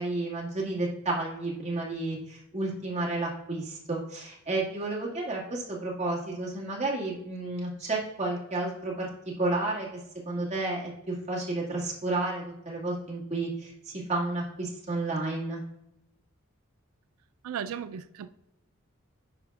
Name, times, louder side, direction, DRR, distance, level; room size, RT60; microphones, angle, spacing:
voice 1, 0.0-9.1 9.4-9.9 10.3-15.6, right 2 dB, 30° right, -5 dB, 1.9 m, -31 dB
voice 2, 17.4-18.3, right 8 dB, 80° right, 12 dB, 0.3 m, -36 dB
10.0 x 5.0 x 2.3 m, 0.86 s
head